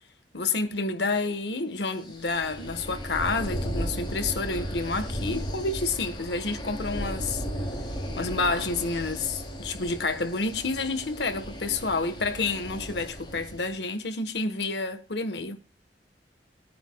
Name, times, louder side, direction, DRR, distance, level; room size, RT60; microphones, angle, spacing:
voice 1, 0.3-7.4 8.2-15.6, left 3 dB, 75° left, 1.3 m, -29 dB
sound 1, 2.0-13.8, equal, 30° left, 2.9 m, -35 dB
20.5 x 9.3 x 2.3 m
head